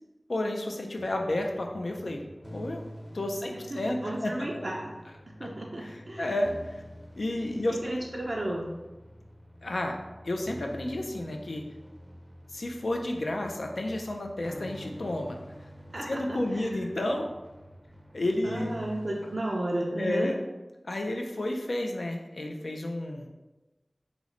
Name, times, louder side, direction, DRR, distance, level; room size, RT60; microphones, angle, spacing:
voice 1, 0.3-2.2 2.5-2.8 3.1-4.6 5.4-5.5 5.8-6.8 7.2-7.9 9.6-10.0 10.2-11.6 12.5-15.4 16.0-17.3 18.1-18.7 20.0-20.4 20.8-23.3, left 1 dB, 85° left, 2 dB, 0.4 m, -31 dB
sound 1, 1.0-19.4, equal, 5° right, 0.5 m, -47 dB
voice 2, 3.5-4.9 5.4-6.3 7.8-8.7 15.9-16.8 18.4-20.3, right 1 dB, 70° right, -2 dB, 0.4 m, -33 dB
3.0 x 2.1 x 3.7 m, 1.1 s
wide cardioid pair, 55°, 0 cm